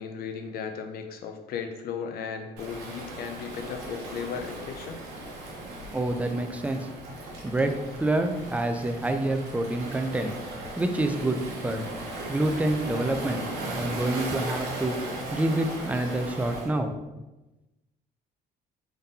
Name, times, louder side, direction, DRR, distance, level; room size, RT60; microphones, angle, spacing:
voice 1, 0.0-5.0, left 6 dB, 65° left, 5 dB, 0.5 m, -36 dB
Waves surf, 2.6-16.7, right 1 dB, 85° right, 0.9 m, -37 dB
voice 2, 5.9-6.9 7.4-7.7 8.0-10.3 10.8-11.9 12.3-13.4 13.7-15.0 15.3-16.9, right 2 dB, 10° right, 6 dB, 0.4 m, -27 dB
3.7 x 3.6 x 2.7 m, 1.0 s
cardioid pair, 110°, 17 cm